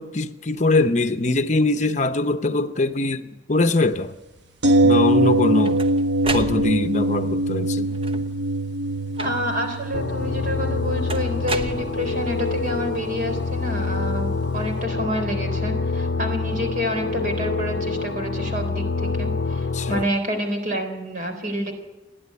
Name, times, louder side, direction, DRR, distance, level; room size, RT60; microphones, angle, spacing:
voice 1, 0.0-4.1 4.8-5.8 6.3-7.9 19.7-20.1, left 2 dB, 40° left, 0.8 m, -22 dB
sound 1, 4.6-14.5 14.8-14.9, right 1 dB, 70° right, 1.1 m, -24 dB
sound 2, 5.2-7.1 7.9-8.5 9.2-9.7 11.1-12.4, right 2 dB, 30° right, 0.9 m, -33 dB
voice 2, 9.2-21.7, equal, 50° right, 3.9 m, -28 dB
sound 3, 9.9-20.0, left 3 dB, 75° left, 0.6 m, -26 dB
29.5 x 10.5 x 9.7 m
head